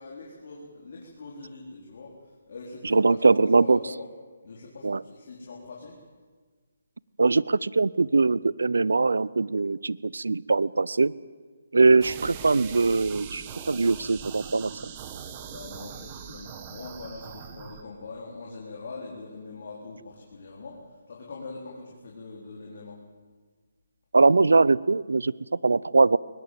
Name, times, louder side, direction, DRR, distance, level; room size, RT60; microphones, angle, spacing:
voice 1, 0.0-4.1 4.4-6.0 11.7-12.2 15.4-20.8 21.1-23.0, left 3 dB, 55° left, -3 dB, 4.4 m, -42 dB
voice 2, 2.8-3.8 4.8-5.0 7.2-11.1 11.7-14.7 24.1-25.3 25.6-26.2, right 3 dB, 85° right, 22 dB, 0.6 m, -21 dB
sound 1, 12.0-17.8, right 8 dB, 25° right, 1.7 m, -41 dB
21.0 x 21.0 x 7.8 m, 1.5 s
hypercardioid pair, 160°, 0 cm